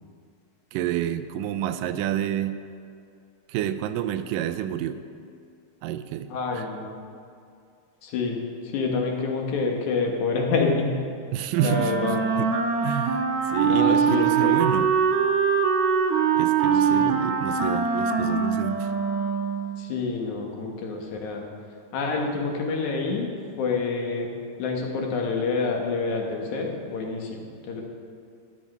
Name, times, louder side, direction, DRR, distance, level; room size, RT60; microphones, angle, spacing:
voice 1, 0.7-2.6 3.5-5.0 5.8-6.6 11.3-11.9 12.4-12.5 12.8-13.2 13.5-14.9 16.4-18.9, right 11 dB, 90° right, 10 dB, 2.2 m, -29 dB
voice 2, 6.3-6.9 8.0-11.0 11.6-12.2 13.6-14.7 16.7-17.2 19.8-21.5 21.9-24.3 24.6-27.8, left 4 dB, 65° left, 1 dB, 2.6 m, -27 dB
Wind instrument woodwind instrument, 11.5-19.8, right 6 dB, 70° right, 2.2 m, -23 dB
12.0 x 9.3 x 5.4 m, 2.4 s
omnidirectional pair, 3.8 m